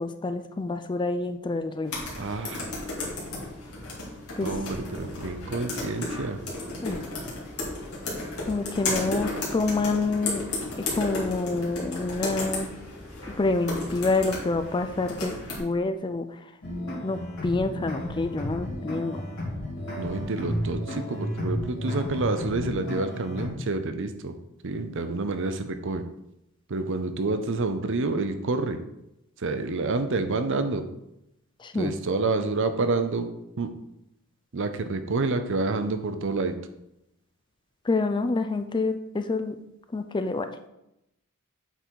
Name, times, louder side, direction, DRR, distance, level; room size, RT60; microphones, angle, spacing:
voice 1, 0.0-1.9 4.4-4.5 6.8-7.0 8.5-10.4 10.9-12.7 13.4-15.3 15.6-16.2 17.0-19.2 31.6-31.9 37.9-39.6 39.9-40.5, left 3 dB, 20° left, 8 dB, 0.4 m, -27 dB
sound 1, 1.9-15.6, left 2 dB, 80° left, 2.3 m, -34 dB
voice 2, 2.2-2.7 4.4-6.4 8.9-9.0 20.0-24.3 24.6-26.0 26.7-28.8 29.4-30.8 31.8-33.3 33.6-33.7 34.5-36.5, right 3 dB, 60° right, 9 dB, 0.6 m, -28 dB
sound 2, 16.6-23.5, equal, 60° left, 2.6 m, -33 dB
8.2 x 3.9 x 4.5 m, 0.85 s
head